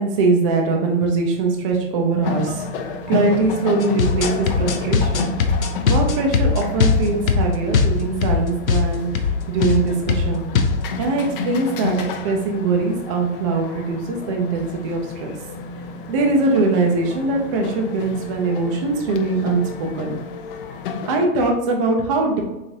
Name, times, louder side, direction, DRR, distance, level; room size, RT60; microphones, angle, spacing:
voice 1, 0.0-5.4 5.8-9.1 9.5-10.5 11.0-15.3 16.1-20.1 21.1-22.4, right 3 dB, 25° right, 1 dB, 0.4 m, -21 dB
sound 1, 1.9-20.3, right 4 dB, 60° left, 1.2 m, -37 dB
sound 2, 2.2-21.3, left 5 dB, 45° left, 0.4 m, -32 dB
sound 3, 3.8-8.4 8.7-8.9 9.2-9.4 9.6-9.8 10.1-10.8, left 5 dB, 85° left, 0.7 m, -19 dB
4.6 x 2.7 x 2.8 m, 1.0 s
hypercardioid pair, 120°, 40 cm